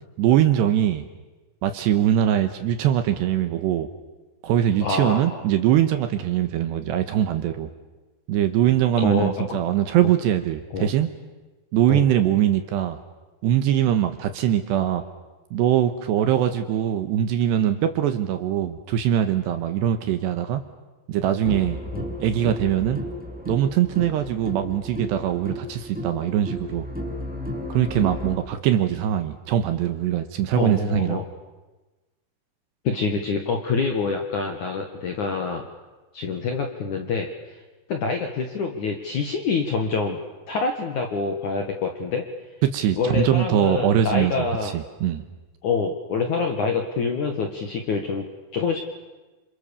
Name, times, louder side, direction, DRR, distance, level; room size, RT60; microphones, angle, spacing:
voice 1, 0.2-1.1 1.6-3.9 4.4-7.7 8.3-11.1 11.7-13.0 13.4-15.0 15.5-20.6 21.1-21.8 22.2-23.0 23.5-26.9 27.7-31.2 42.6-45.2, right 11 dB, 70° right, 8 dB, 2.9 m, -22 dB
voice 2, 4.8-5.4 9.0-9.6 10.7-10.9 11.9-12.0 21.9-22.1 30.6-31.2 32.8-35.6 36.1-37.6 37.9-40.2 40.5-42.3 43.0-44.8 45.6-48.3 48.5-48.8, left 4 dB, 60° left, 3 dB, 2.2 m, -26 dB
sound 1, 21.4-28.3, left 1 dB, 5° right, 0.6 m, -33 dB
28.5 x 28.0 x 7.1 m, 1.2 s
omnidirectional pair, 5.8 m